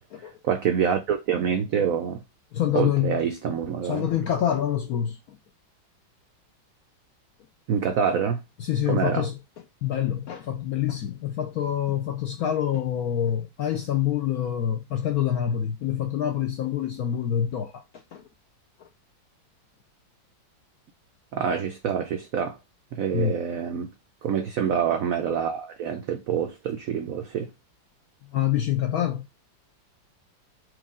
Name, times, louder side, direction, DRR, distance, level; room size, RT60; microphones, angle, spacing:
voice 1, 0.2-2.2 2.7-4.1 7.7-8.4 8.9-9.3 21.3-22.6 22.9-23.9 24.2-27.5, right 7 dB, 85° right, 0.7 m, -26 dB
voice 2, 2.5-3.2 3.8-5.2 8.6-9.4 9.8-17.8 18.1-18.2 23.1-23.4 28.3-29.2, left 10 dB, 75° left, 0.8 m, -26 dB
4.7 x 2.5 x 3.6 m
omnidirectional pair, 2.1 m